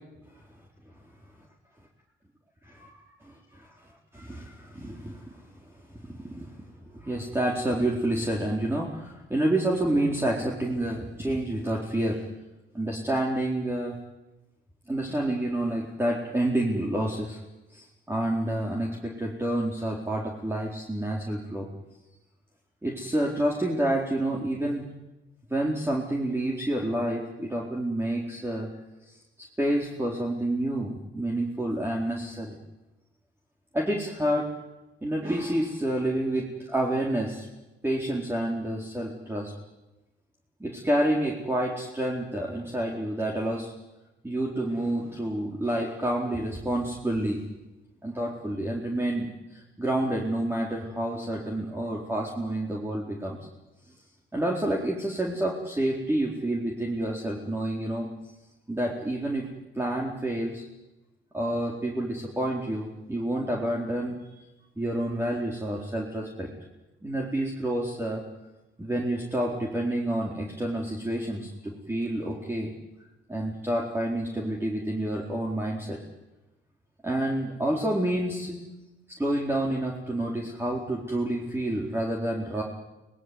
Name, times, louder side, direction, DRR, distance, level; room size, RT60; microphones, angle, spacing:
voice 1, 2.6-3.7 4.1-5.4 6.0-6.6 6.8-12.2 12.7-14.0 14.9-17.4 17.7-21.7 22.8-24.8 25.5-28.7 29.6-32.6 33.7-34.5 35.0-37.5 37.8-39.5 40.6-43.7 44.2-47.4 48.0-53.4 54.3-58.1 58.7-59.5 59.8-60.6 61.3-64.2 64.8-66.5 67.0-68.2 68.8-72.7 73.3-76.0 77.0-78.6 79.2-82.6, right 1 dB, 10° right, -2 dB, 4.3 m, -29 dB
24.5 x 20.0 x 9.6 m, 1.0 s
cardioid pair, 90°, 20 cm